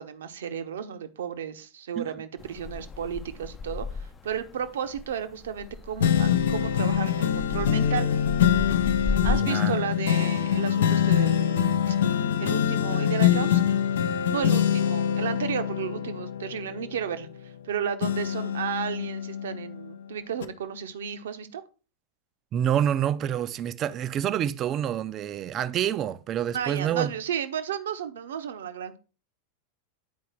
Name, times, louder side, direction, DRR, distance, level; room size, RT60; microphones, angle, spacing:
voice 1, 0.0-8.1 9.2-12.0 12.4-13.6 14.3-21.6 26.5-29.0, right 8 dB, 60° right, 0.9 m, -33 dB
sound 1, 2.4-9.4, left 4 dB, 20° left, 0.6 m, -35 dB
sound 2, 6.0-17.6 18.0-19.9 20.4-20.5, left 9 dB, 60° left, 0.7 m, -24 dB
voice 2, 9.2-9.8 22.5-27.1, right 10 dB, 30° right, 0.6 m, -27 dB
9.5 x 4.7 x 4.5 m
figure-of-eight pair, 90°, 0 cm